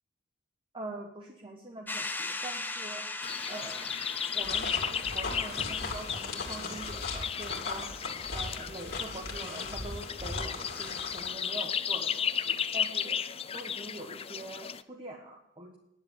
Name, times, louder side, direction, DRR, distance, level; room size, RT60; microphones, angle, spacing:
voice 1, 0.7-3.2 3.5-3.9 4.3-13.2 13.5-15.8, right 2 dB, 25° right, 1 dB, 1.2 m, -44 dB
sound 1, 1.9-6.7, left 2 dB, 10° left, 0.8 m, -39 dB
sound 2, 3.2-14.8, left 8 dB, 30° left, 0.5 m, -35 dB
sound 3, 4.4-11.3, left 3 dB, 55° left, 2.6 m, -38 dB
10.5 x 7.6 x 9.8 m, 0.86 s
head